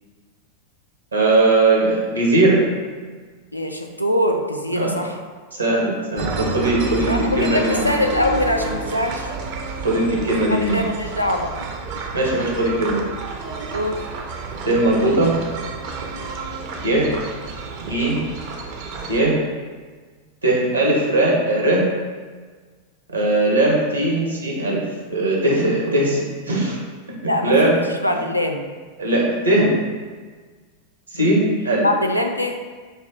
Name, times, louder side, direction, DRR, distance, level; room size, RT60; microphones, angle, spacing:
voice 1, 1.1-2.7 4.7-5.0 5.5-7.8 9.7-10.8 12.1-13.0 14.6-15.3 16.8-17.1 17.9-18.2 19.1-19.4 20.4-21.9 23.1-24.8 25.1-26.8 27.4-27.8 29.0-29.7 31.1-31.8, right 2 dB, 80° right, -2 dB, 1.0 m, -19 dB
voice 2, 3.5-5.2 7.1-9.3 10.7-11.5 13.7-14.0 27.2-28.6 31.8-32.5, left 1 dB, 90° left, 3 dB, 0.4 m, -22 dB
sound 1, 6.2-19.2, right 4 dB, 45° right, 0.5 m, -30 dB
5.3 x 2.2 x 3.6 m, 1.5 s
figure-of-eight pair, 90°, 0 cm